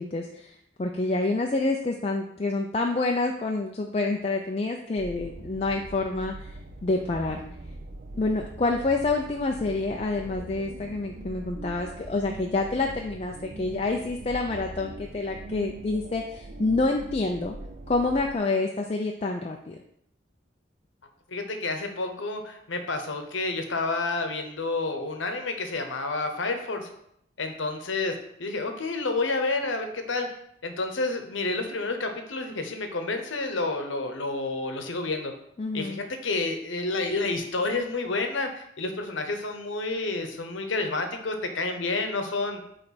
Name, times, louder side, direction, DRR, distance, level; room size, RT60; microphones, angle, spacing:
voice 1, 0.0-6.5 6.8-7.4 8.1-17.5 17.9-19.8 35.6-36.0, left 3 dB, 30° left, 2 dB, 0.4 m, -28 dB
sound 1, 5.0-18.4, right 2 dB, 45° right, 0.5 m, -42 dB
voice 2, 21.3-26.9 27.4-30.3 30.6-35.3 35.7-42.6, left 3 dB, 75° left, 5 dB, 0.9 m, -29 dB
8.4 x 3.3 x 4.1 m, 0.74 s
head